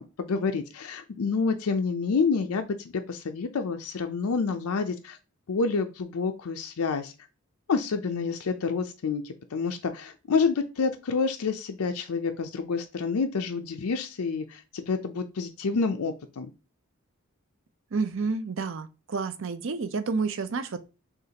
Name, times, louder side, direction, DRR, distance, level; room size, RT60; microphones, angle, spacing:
voice 1, 0.0-5.2 5.5-7.1 7.7-16.5, left 4 dB, 90° left, 0.5 m, -28 dB
voice 2, 17.9-20.8, right 4 dB, 60° right, 0.5 m, -30 dB
6.5 x 2.4 x 2.9 m
head